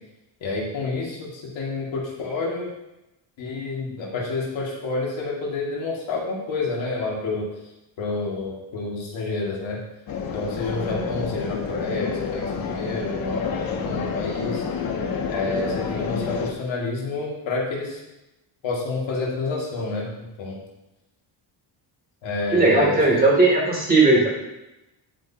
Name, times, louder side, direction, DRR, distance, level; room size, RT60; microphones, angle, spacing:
voice 1, 0.4-2.7 3.4-7.5 8.0-9.8 10.3-14.7 15.3-18.0 18.6-20.6 22.2-23.4, left 3 dB, 70° left, -3 dB, 2.5 m, -29 dB
sound 1, 10.1-16.5, left 6 dB, 45° left, 1.1 m, -29 dB
voice 2, 22.5-24.3, right 2 dB, 20° right, -4 dB, 2.8 m, -17 dB
10.5 x 8.4 x 2.9 m, 0.93 s
cardioid pair, 170°, 47 cm